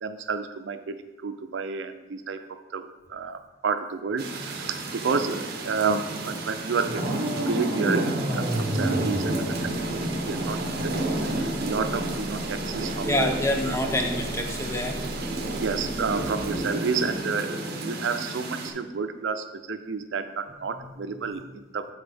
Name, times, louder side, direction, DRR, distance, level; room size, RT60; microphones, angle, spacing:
voice 1, 0.0-1.0 1.2-2.4 2.7-9.3 9.6-9.7 10.0-13.3 13.7-13.8 15.6-21.9, right 5 dB, 85° right, 9 dB, 0.5 m, -30 dB
sound 1, 4.2-18.7, right 2 dB, 55° right, 0.8 m, -31 dB
sound 2, 6.9-10.0, equal, 30° right, 1.2 m, -30 dB
sound 3, 8.6-16.6, equal, 45° left, 1.9 m, -41 dB
voice 2, 13.1-15.0 20.8-20.9, left 1 dB, 15° left, 4 dB, 0.6 m, -26 dB
7.9 x 4.1 x 3.4 m, 1.1 s
head